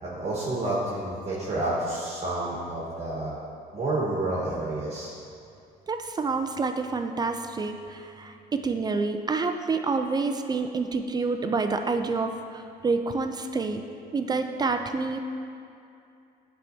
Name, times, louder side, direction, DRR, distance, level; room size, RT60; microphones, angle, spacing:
voice 1, 0.0-3.4 3.7-5.1, right 2 dB, 40° right, -6 dB, 1.4 m, -29 dB
voice 2, 5.9-13.8 14.1-15.2, right 4 dB, 25° right, 6 dB, 0.3 m, -28 dB
10.0 x 4.4 x 2.8 m, 2.6 s
cardioid pair, 110°, 17 cm